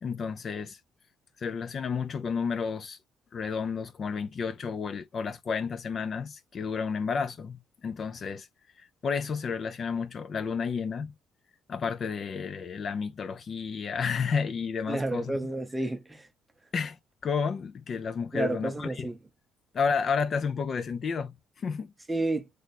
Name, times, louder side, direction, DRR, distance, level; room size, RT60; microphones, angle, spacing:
voice 1, 0.0-0.8 1.4-3.0 3.3-8.5 8.8-11.1 11.7-15.4 16.7-19.1 19.7-21.9, left 5 dB, 40° left, 0.3 m, -31 dB
voice 2, 14.9-16.3 18.3-19.2 22.1-22.5, right 2 dB, 10° right, 0.6 m, -30 dB
3.2 x 2.1 x 4.0 m
cardioid pair, 135°, 0 cm